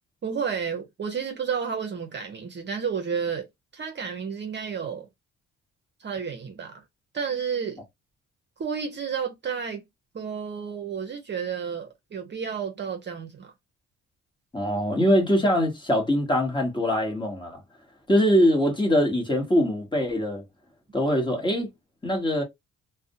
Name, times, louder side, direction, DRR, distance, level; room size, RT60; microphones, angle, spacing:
voice 1, 0.2-3.5 3.7-5.1 6.0-6.8 7.1-7.8 8.6-9.8 10.1-13.5, right 6 dB, 35° right, 0.6 m, -31 dB
voice 2, 14.5-17.6 18.1-20.4 20.9-21.7 22.0-22.4, equal, 15° left, 1.1 m, -23 dB
2.4 x 2.1 x 2.6 m
cardioid pair, 90°, 30 cm